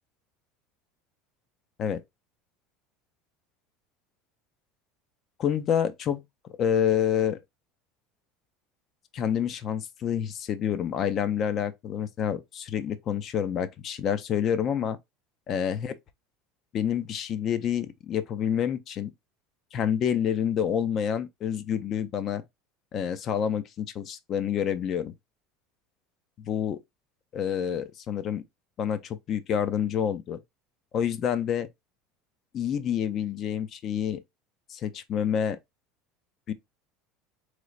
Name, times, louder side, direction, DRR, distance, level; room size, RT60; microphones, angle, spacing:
voice 1, 5.4-6.2 6.6-7.4 9.1-15.0 15.5-15.9 16.7-19.1 19.7-22.4 22.9-25.1 26.5-26.8 27.3-28.4 28.8-30.4 30.9-31.7 32.5-34.2 34.7-35.6 36.5-36.6, left 8 dB, 30° left, 0.3 m, -28 dB
3.8 x 3.1 x 2.4 m
cardioid pair, 175°, 0 cm